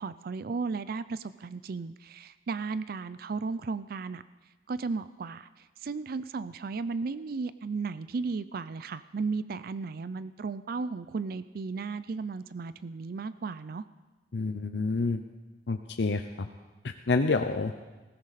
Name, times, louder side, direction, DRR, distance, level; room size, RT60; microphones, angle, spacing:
voice 1, 0.0-4.2 4.7-13.8, right 4 dB, 55° right, 15 dB, 0.4 m, -35 dB
voice 2, 14.3-15.2 15.7-16.5 16.8-17.7, left 3 dB, 75° left, 7 dB, 0.6 m, -28 dB
19.0 x 16.0 x 4.1 m, 1.2 s
head